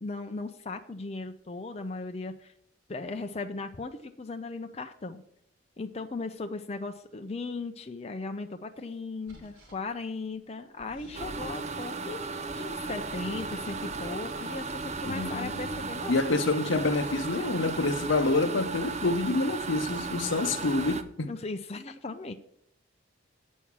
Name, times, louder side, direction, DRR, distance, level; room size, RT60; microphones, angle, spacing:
voice 1, 0.0-2.5 2.9-5.2 5.8-16.1 21.3-22.3, left 3 dB, 30° left, 0.5 m, -37 dB
sound 1, 9.3-9.8 10.8-11.9 12.5-14.2 14.5-15.9, equal, 60° right, 2.7 m, -49 dB
sound 2, 11.1-21.0, right 3 dB, 35° right, 0.6 m, -35 dB
voice 2, 15.1-15.5 16.1-21.3, left 2 dB, 65° left, 0.7 m, -27 dB
8.3 x 6.3 x 7.2 m
head